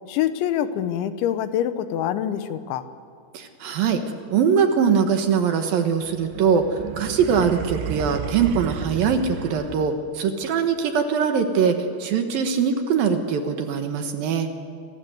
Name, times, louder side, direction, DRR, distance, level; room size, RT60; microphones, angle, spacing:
voice 1, 0.1-2.9, left 10 dB, 85° left, 11 dB, 3.4 m, -25 dB
voice 2, 3.3-4.0 4.3-6.6 7.0-11.7 12.0-14.5, right 6 dB, 65° right, 6 dB, 2.8 m, -22 dB
sound 1, 6.0-10.2, right 11 dB, 80° right, 3.2 m, -33 dB
28.5 x 24.5 x 8.0 m, 2.2 s
omnidirectional pair, 5.2 m